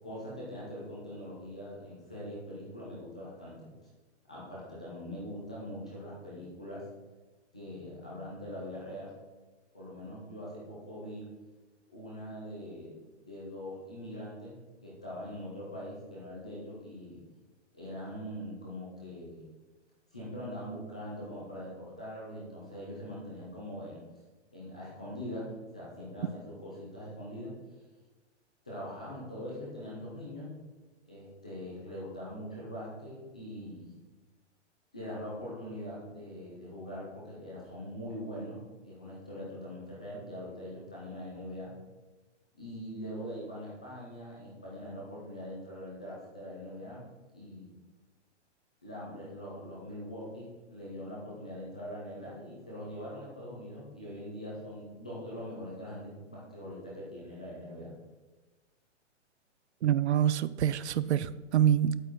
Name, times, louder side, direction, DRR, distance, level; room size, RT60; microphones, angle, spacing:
voice 1, 0.0-3.7 4.3-6.9 7.5-9.1 9.7-11.3 11.9-13.0 13.3-14.6 14.8-17.2 17.7-19.5 20.1-24.0 24.5-27.5 28.6-30.6 31.1-33.9 34.9-41.7 42.6-47.0 47.3-47.7 48.8-57.9, equal, 5° left, 0.3 m, -42 dB
voice 2, 59.8-62.0, right 10 dB, 70° right, 0.6 m, -26 dB
9.0 x 8.4 x 4.4 m
hypercardioid pair, 160°, 36 cm